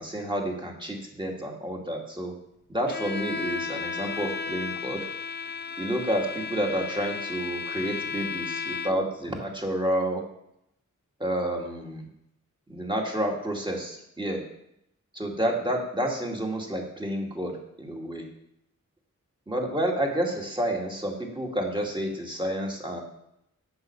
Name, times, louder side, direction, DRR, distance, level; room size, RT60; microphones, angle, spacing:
voice 1, 0.0-2.3 2.7-5.0 5.8-10.2 11.2-12.1 12.7-14.4 15.1-18.3 19.5-23.0, right 1 dB, 15° right, 0 dB, 2.2 m, -30 dB
Bowed string instrument, 2.9-9.2, left 5 dB, 35° left, 0.4 m, -34 dB
8.0 x 7.8 x 6.9 m, 0.79 s
wide cardioid pair, 85°, 31 cm